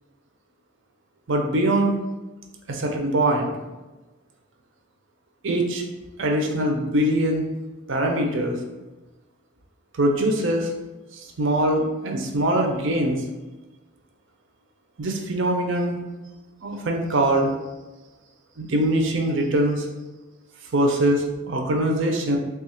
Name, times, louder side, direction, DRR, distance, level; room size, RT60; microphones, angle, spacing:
voice 1, 1.3-1.9 2.7-3.5 5.4-5.8 6.2-7.5 7.9-8.6 9.9-10.7 11.4-13.2 15.0-16.0 16.6-17.5 18.6-19.9 20.7-22.4, right 1 dB, 65° right, 1 dB, 0.6 m, -22 dB
3.3 x 2.4 x 4.3 m, 1.1 s
head